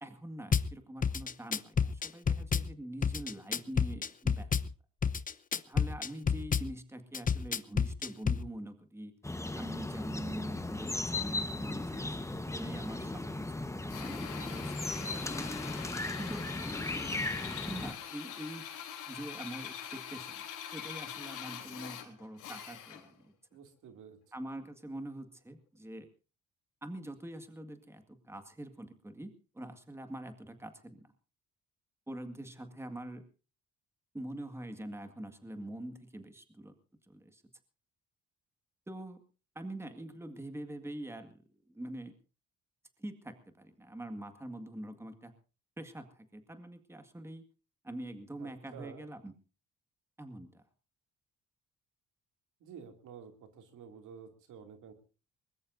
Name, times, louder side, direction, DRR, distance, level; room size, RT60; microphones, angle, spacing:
voice 1, 0.0-4.5 5.7-9.1 9.5-15.2 16.2-16.5 17.4-18.7 19.1-23.3 24.3-26.1 26.8-31.1 32.1-33.3 34.1-36.8 37.1-37.4 38.9-39.2 39.6-41.4 41.7-42.1 43.0-45.3 45.8-47.5 47.8-49.3 50.2-50.6, right 1 dB, 10° right, 7 dB, 1.9 m, -44 dB
Drum kit / Bass drum, 0.5-0.7 1.0-2.7 3.0-4.7 5.0-6.7 7.1-8.4, left 6 dB, 25° left, 0.7 m, -29 dB
sound 1, 9.2-17.9, left 2 dB, 10° left, 1.2 m, -37 dB
Drill, 13.9-23.2, left 9 dB, 90° left, 3.6 m, -44 dB
voice 2, 23.5-24.2 48.4-49.1 52.6-54.9, right 7 dB, 80° right, 5 dB, 2.8 m, -51 dB
22.0 x 20.5 x 2.7 m, 0.35 s
cardioid pair, 90°, 30 cm